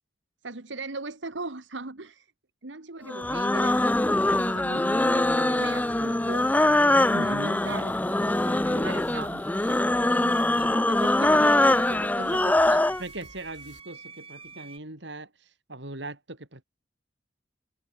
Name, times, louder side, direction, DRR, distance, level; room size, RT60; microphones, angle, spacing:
voice 1, 0.4-2.3 2.6-3.8 4.1-6.5 7.1-9.9 10.2-12.9, right 3 dB, 90° right, 1.7 m, -39 dB
sound 1, 3.1-13.0, left 1 dB, 10° left, 0.5 m, -23 dB
sound 2, 3.2-13.8, left 1 dB, 70° left, 5.8 m, -52 dB
sound 3, 5.7-6.2 8.3-9.3 9.6-14.8, right 5 dB, 30° right, 6.3 m, -51 dB
voice 2, 7.1-7.9 13.0-16.6, right 2 dB, 75° right, 4.3 m, -39 dB
head